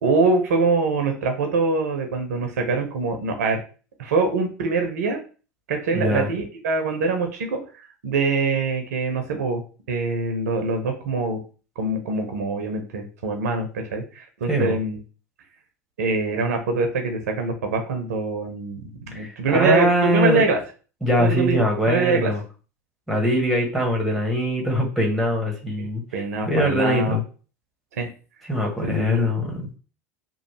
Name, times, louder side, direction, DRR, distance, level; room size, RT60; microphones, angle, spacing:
voice 1, 0.0-3.6 4.0-5.2 5.7-9.6 9.9-11.4 11.8-15.0 16.0-20.6 21.2-22.3 25.8-27.2 27.9-28.1 28.8-29.3, right 3 dB, 75° right, 5 dB, 0.6 m, -24 dB
voice 2, 5.9-6.3 14.5-14.8 19.1-20.5 21.0-22.4 23.1-26.0 26.5-27.2 28.5-29.7, equal, ahead, 0 dB, 1.2 m, -22 dB
3.0 x 2.0 x 3.1 m, 0.36 s
hypercardioid pair, 80°, 9 cm